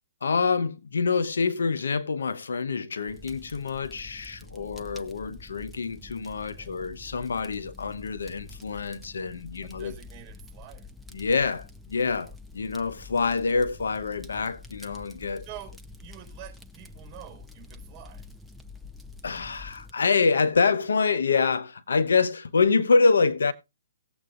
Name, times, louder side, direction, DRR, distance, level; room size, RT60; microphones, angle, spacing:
voice 1, 0.2-10.0 11.1-15.5 19.2-23.5, left 4 dB, 85° left, 0.9 m, -26 dB
Fire, 3.1-19.9, left 3 dB, ahead, 0.6 m, -47 dB
voice 2, 4.5-5.0 6.5-6.7 9.6-10.9 12.2-12.3 15.4-18.3, right 12 dB, 20° right, 4.7 m, -47 dB
18.5 x 7.9 x 2.5 m
hypercardioid pair, 150°, 0 cm